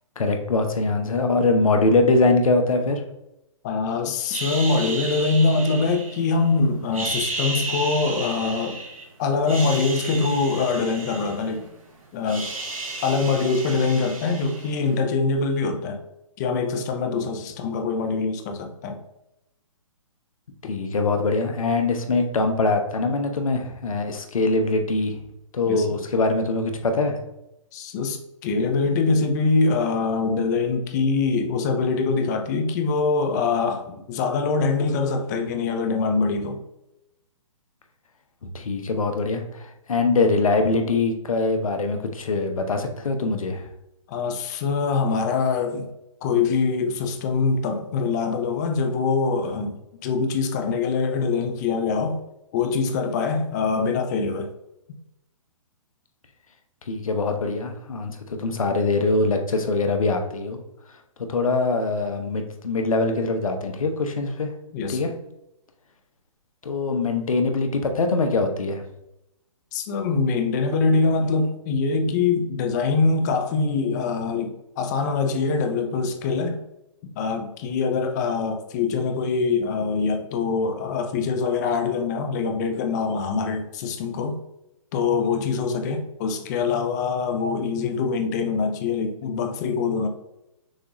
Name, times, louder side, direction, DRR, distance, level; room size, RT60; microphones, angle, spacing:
voice 1, 0.2-3.0 20.6-25.1 25.5-27.2 38.4-43.7 56.9-60.6 61.3-64.5 64.9-65.1 66.6-68.8, left 3 dB, 85° left, 0.9 m, -23 dB
voice 2, 3.6-8.8 9.2-11.6 12.1-12.5 13.0-16.0 16.4-19.0 25.7-25.9 27.7-36.6 44.1-45.9 46.2-52.2 52.5-54.5 64.7-65.1 69.7-76.6 77.2-84.4 84.9-90.1, left 4 dB, 30° left, 0.6 m, -24 dB
sound 1, 4.3-6.5 6.9-9.0 9.4-11.8 12.0-14.9, right 3 dB, 85° right, 1.5 m, -33 dB
6.3 x 2.5 x 3.0 m
hypercardioid pair, 145°, 17 cm